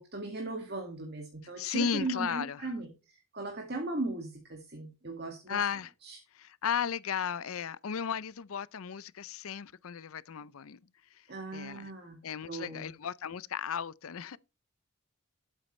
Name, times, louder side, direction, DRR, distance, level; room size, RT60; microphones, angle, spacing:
voice 1, 0.0-5.6 6.0-6.2 11.3-12.2 12.5-12.9, right 2 dB, 50° right, 2.1 m, -38 dB
voice 2, 1.6-2.7 5.5-5.9 6.4-10.8 11.1-11.3 11.5-11.9 12.2-14.4, left 7 dB, 75° left, 0.5 m, -35 dB
12.5 x 8.1 x 3.2 m
head